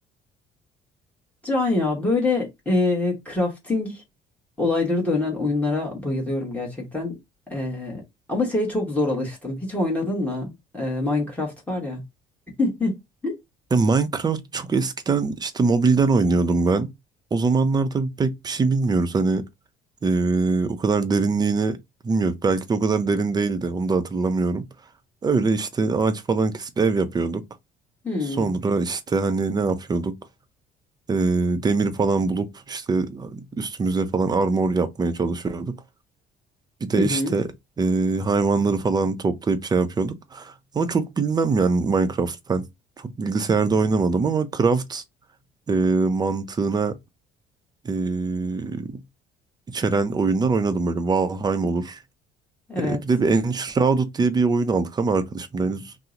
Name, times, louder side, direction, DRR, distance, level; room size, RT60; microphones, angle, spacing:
voice 1, 1.4-4.0 4.6-7.1 7.5-8.0 8.3-12.0 12.6-13.3 28.0-28.5 37.0-37.3 52.7-53.0, left 2 dB, 10° left, 1.1 m, -25 dB
voice 2, 13.7-16.9 17.3-19.4 20.0-21.8 22.0-24.6 25.2-27.4 28.4-30.1 31.1-35.7 36.8-37.5 37.8-42.6 43.0-45.0 45.7-47.0 47.8-49.0 49.7-52.0 52.8-55.9, right 4 dB, 25° right, 0.5 m, -23 dB
2.8 x 2.0 x 3.6 m
cardioid pair, 110°, 17 cm